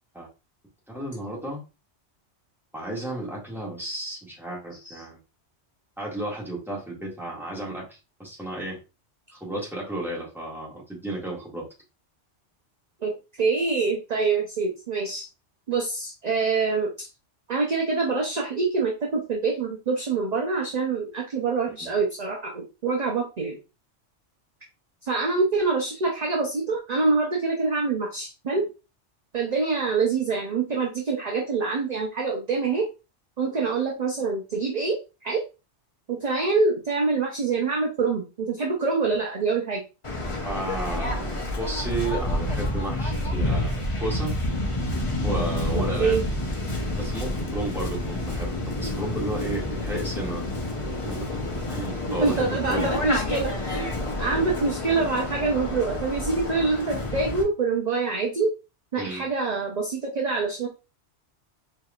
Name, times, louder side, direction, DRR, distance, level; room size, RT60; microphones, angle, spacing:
voice 1, 0.9-1.6 2.7-5.2 6.0-8.8 9.3-11.7 21.8-21.9 40.4-44.4 45.2-46.2 47.0-50.4 51.0-53.1 59.0-59.3, right 1 dB, ahead, -4 dB, 1.6 m, -33 dB
voice 2, 13.0-15.3 15.7-17.1 17.5-23.6 25.0-28.6 29.3-32.8 33.4-35.0 35.2-35.4 36.1-39.8 46.0-46.2 52.2-58.5 58.9-60.7, right 4 dB, 40° right, 0 dB, 0.7 m, -25 dB
Waves surf, 40.0-57.4, left 1 dB, 30° left, 0.8 m, -29 dB
4.6 x 3.1 x 2.4 m, 0.29 s
omnidirectional pair, 1.2 m